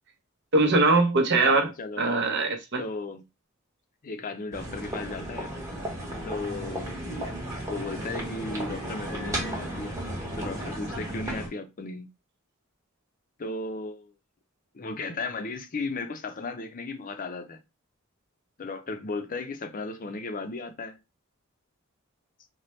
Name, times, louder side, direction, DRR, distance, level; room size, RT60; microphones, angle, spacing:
voice 1, 0.5-1.7 2.0-2.8, right 3 dB, 55° right, 0.8 m, -21 dB
voice 2, 1.4-2.3 2.8-3.2 4.0-5.5 6.2-7.0 7.7-10.0 10.4-12.1 13.4-14.1 14.7-17.6 18.6-21.0, left 3 dB, 40° left, 0.5 m, -35 dB
sound 1, 4.5-11.5, right 1 dB, 15° right, 1.1 m, -34 dB
4.1 x 2.1 x 3.1 m
head